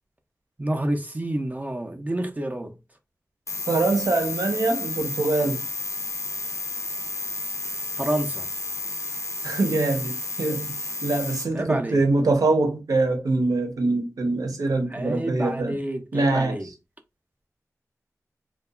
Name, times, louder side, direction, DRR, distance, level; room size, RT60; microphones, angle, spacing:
voice 1, 0.6-2.8 8.0-8.5 11.5-12.0 14.9-16.7, right 1 dB, 25° right, 0.4 m, -28 dB
sound 1, 3.5-11.4, left 3 dB, 60° left, 0.5 m, -32 dB
voice 2, 3.7-5.6 9.4-10.7 11.0-15.8 16.1-16.6, right 2 dB, 80° right, 0.7 m, -24 dB
2.7 x 2.2 x 2.2 m
wide cardioid pair, 55°, 6 cm